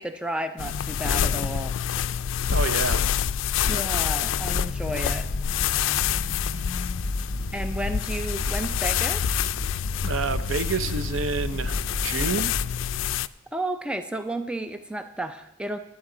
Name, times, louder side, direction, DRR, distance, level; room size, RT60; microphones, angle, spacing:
voice 1, 0.0-1.7 3.7-5.3 7.5-9.3 13.5-15.8, right 1 dB, 5° right, 8 dB, 0.4 m, -32 dB
sound 1, 0.6-13.3, left 9 dB, 80° left, 0.3 m, -27 dB
voice 2, 2.5-3.0 3.6-3.8 10.0-12.6, right 4 dB, 90° right, 11 dB, 0.7 m, -29 dB
sound 2, 4.3-12.8, left 1 dB, 35° left, 0.8 m, -33 dB
22.5 x 8.0 x 3.9 m, 0.91 s
head